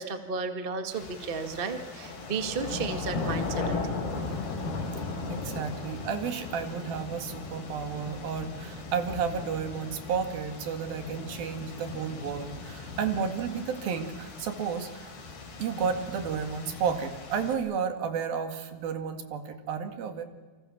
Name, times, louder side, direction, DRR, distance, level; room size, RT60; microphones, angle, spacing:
voice 1, 0.0-4.0, right 4 dB, 45° right, 7 dB, 0.6 m, -33 dB
sound 1, 0.9-17.5, left 3 dB, 85° left, 6.2 m, -37 dB
voice 2, 5.3-15.1 15.6-20.2, right 6 dB, 70° right, 6 dB, 3.8 m, -32 dB
29.0 x 26.0 x 7.3 m, 1.4 s
omnidirectional pair, 4.4 m